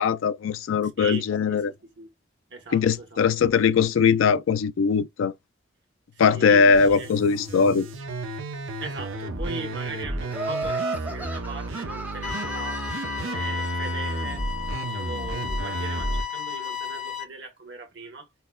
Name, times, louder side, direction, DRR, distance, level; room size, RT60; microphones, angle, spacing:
voice 1, 0.0-1.7 2.7-5.3 6.2-7.9, left 6 dB, 80° left, 0.4 m, -20 dB
voice 2, 1.0-2.1 2.5-3.2 6.1-7.1 8.8-12.8 13.2-14.5 14.8-18.3, right 3 dB, 60° right, 1.2 m, -39 dB
sound 1, 6.7-16.2, right 2 dB, 85° right, 0.8 m, -32 dB
Laughter, 10.3-13.5, right 2 dB, 10° right, 0.5 m, -33 dB
sound 2, 12.2-17.2, left 8 dB, 40° left, 0.6 m, -33 dB
5.5 x 2.1 x 2.3 m
head